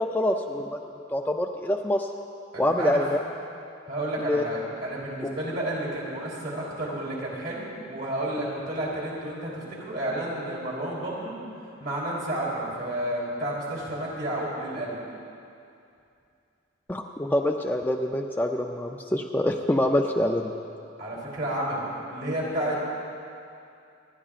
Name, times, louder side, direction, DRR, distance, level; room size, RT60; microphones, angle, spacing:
voice 1, 0.0-2.1 2.6-3.2 4.2-4.4 5.2-5.3 8.4-8.5 16.9-20.5, left 1 dB, 10° left, 2 dB, 0.4 m, -26 dB
voice 2, 2.5-3.0 3.9-11.4 11.8-15.0 21.0-22.9, right 1 dB, 55° right, -5 dB, 3.4 m, -31 dB
26.5 x 11.0 x 2.5 m, 2.6 s
head